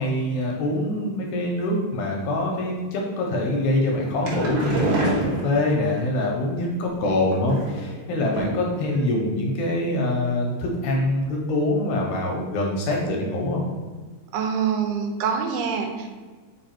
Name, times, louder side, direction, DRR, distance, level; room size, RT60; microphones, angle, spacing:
voice 1, 0.0-13.6, left 1 dB, 80° left, -1 dB, 1.7 m, -24 dB
sound 1, 3.9-6.0 7.0-7.9 8.3-8.8 9.0-9.1 9.5-9.6, right 2 dB, 65° right, 1.5 m, -27 dB
voice 2, 14.3-16.1, right 6 dB, 85° right, 4 dB, 2.0 m, -25 dB
4.6 x 2.6 x 4.3 m, 1.4 s
omnidirectional pair, 3.5 m